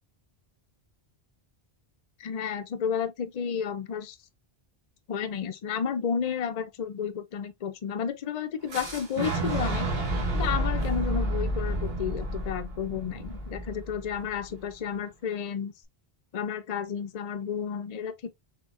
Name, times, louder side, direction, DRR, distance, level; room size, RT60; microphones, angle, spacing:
voice 1, 2.2-4.2 5.1-9.9 10.3-15.7 16.3-18.3, left 7 dB, 45° left, 0.6 m, -32 dB
Fire / Explosion, 8.7-14.6, right 1 dB, 70° right, 1.5 m, -30 dB
4.4 x 3.6 x 2.4 m
omnidirectional pair, 1.0 m